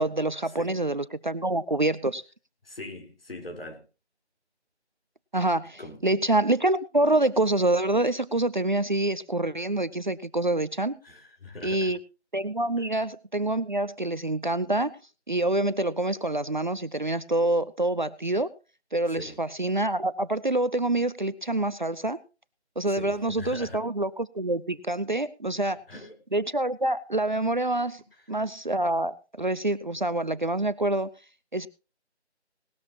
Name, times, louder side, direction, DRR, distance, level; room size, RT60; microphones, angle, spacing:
voice 1, 0.0-2.2 5.3-11.0 11.6-12.0 12.3-15.0 15.3-18.5 18.9-22.2 22.8-25.8 26.3-28.0 28.3-31.1 31.5-31.7, right 2 dB, 45° right, 15 dB, 0.6 m, -26 dB
voice 2, 0.5-0.8 2.6-3.8 5.8-6.1 11.0-11.9 12.8-12.9 19.1-19.4 22.9-23.9 25.9-26.2, left 2 dB, 55° left, 4 dB, 4.0 m, -42 dB
19.0 x 13.0 x 2.9 m, 0.32 s
figure-of-eight pair, 170°, 34 cm